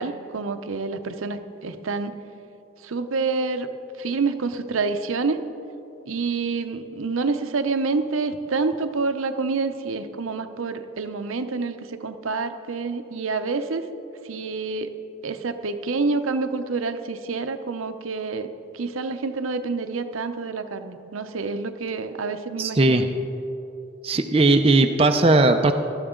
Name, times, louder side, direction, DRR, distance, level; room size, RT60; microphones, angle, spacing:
voice 1, 0.0-2.1 2.8-3.7 4.0-5.4 6.1-13.9 14.3-14.9 15.2-18.5 18.7-23.0, right 4 dB, 85° right, 8 dB, 0.7 m, -27 dB
voice 2, 22.6-23.1 24.0-25.7, right 2 dB, 30° right, 5 dB, 0.5 m, -18 dB
18.5 x 12.5 x 3.8 m, 2.8 s
head